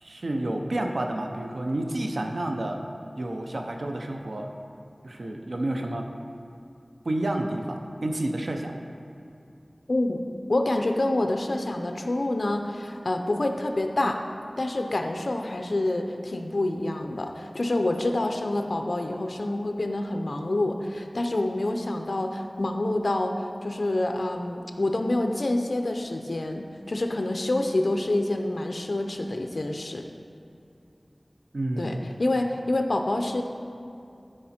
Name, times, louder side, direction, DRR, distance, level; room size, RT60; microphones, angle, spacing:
voice 1, 0.0-2.8 3.2-4.5 5.0-6.0 7.0-8.7 31.5-32.0, right 1 dB, 85° right, 3 dB, 0.7 m, -30 dB
voice 2, 9.9-10.2 10.5-14.2 14.6-30.0 31.8-33.4, left 2 dB, 75° left, 4 dB, 0.6 m, -27 dB
12.0 x 5.1 x 4.3 m, 2.6 s
wide cardioid pair, 50°, 0 cm